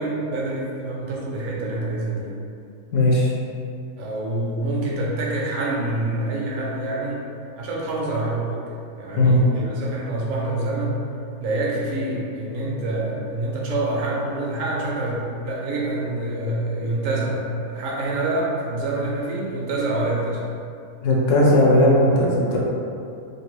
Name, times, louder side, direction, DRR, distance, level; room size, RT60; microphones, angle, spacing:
voice 1, 0.0-2.4 4.0-7.2 7.6-8.6 9.0-11.0 11.4-17.4 17.7-20.4, right 2 dB, 75° right, -3 dB, 1.0 m, -26 dB
voice 2, 2.9-3.3 9.2-9.4 21.0-22.6, left 1 dB, 70° left, -3 dB, 0.9 m, -17 dB
2.6 x 2.4 x 3.2 m, 2.5 s
omnidirectional pair, 1.4 m